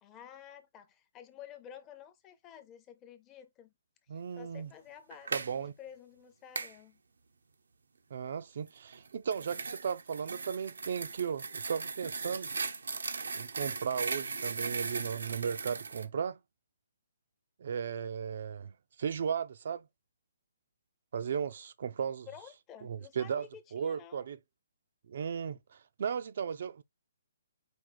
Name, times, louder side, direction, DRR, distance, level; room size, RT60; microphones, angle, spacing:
voice 1, 0.0-3.7 4.1-7.0 22.3-24.3, left 9 dB, 15° left, 0.6 m, -52 dB
voice 2, 4.1-4.7 5.3-5.7 8.1-12.5 13.3-16.4 17.6-18.7 19.0-19.9 21.1-22.3 22.8-23.5 23.7-24.4 25.1-26.8, right 7 dB, 55° right, 0.4 m, -35 dB
sound 1, 5.1-5.5 6.5-6.7 8.9-16.0, right 4 dB, 90° right, 0.7 m, -38 dB
4.8 x 2.4 x 3.8 m
hypercardioid pair, 160°, 0 cm